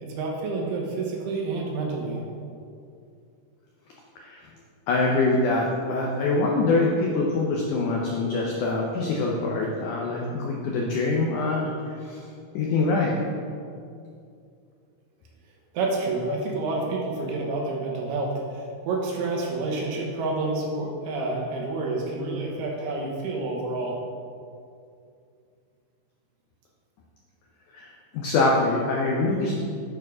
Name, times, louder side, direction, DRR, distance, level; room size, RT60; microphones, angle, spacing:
voice 1, 0.0-2.2 15.7-24.0, right 3 dB, 85° right, -1 dB, 3.1 m, -29 dB
voice 2, 4.9-11.7 12.0-12.2 12.5-13.1 27.7-29.6, left 3 dB, 85° left, -2 dB, 1.7 m, -24 dB
8.9 x 4.7 x 4.8 m, 2.4 s
omnidirectional pair, 4.5 m